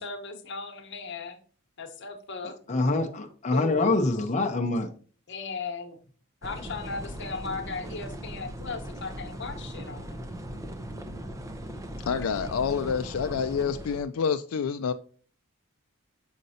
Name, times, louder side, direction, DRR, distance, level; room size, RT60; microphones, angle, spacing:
voice 1, 0.0-1.4 1.8-2.6 3.5-4.0 5.3-6.0 6.4-10.2, left 4 dB, 55° left, 1.0 m, -37 dB
voice 2, 2.4-4.9, left 2 dB, 35° left, 0.7 m, -25 dB
sound 1, 6.4-14.0, right 1 dB, 15° right, 0.6 m, -39 dB
voice 3, 12.1-14.9, left 6 dB, 85° left, 0.4 m, -28 dB
6.4 x 5.2 x 2.8 m
head